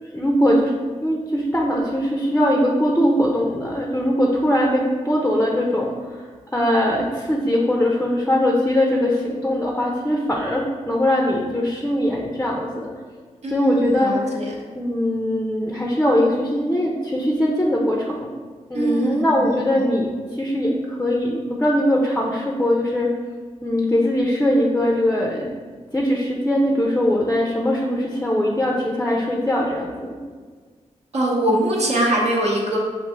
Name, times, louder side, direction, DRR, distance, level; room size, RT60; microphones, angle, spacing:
voice 1, 0.0-6.2 6.5-12.9 13.5-14.1 14.7-18.3 18.7-23.1 23.6-25.5 25.9-30.2, left 1 dB, 10° left, -1 dB, 0.6 m, -21 dB
voice 2, 13.4-14.5 18.7-19.9 31.1-32.8, right 1 dB, 60° right, -4 dB, 1.0 m, -22 dB
5.3 x 2.6 x 3.7 m, 1.5 s
cardioid pair, 80°, 13 cm